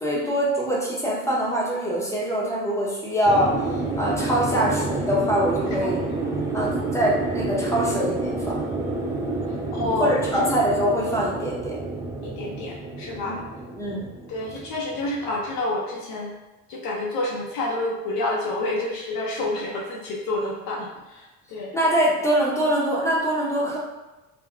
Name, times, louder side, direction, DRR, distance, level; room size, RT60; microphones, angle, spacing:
voice 1, 0.0-3.5 4.0-6.0 6.5-8.6 9.8-11.8 13.3-13.4 13.8-14.1 21.7-23.8, equal, 10° left, -5 dB, 0.9 m, -24 dB
sound 1, 3.2-15.5, right 2 dB, 10° right, 0.4 m, -29 dB
voice 2, 9.7-10.5 12.2-13.4 13.9-16.3 16.7-21.8, left 2 dB, 75° left, -3 dB, 0.7 m, -29 dB
3.4 x 2.2 x 2.3 m, 1.1 s
supercardioid pair, 95°, 36 cm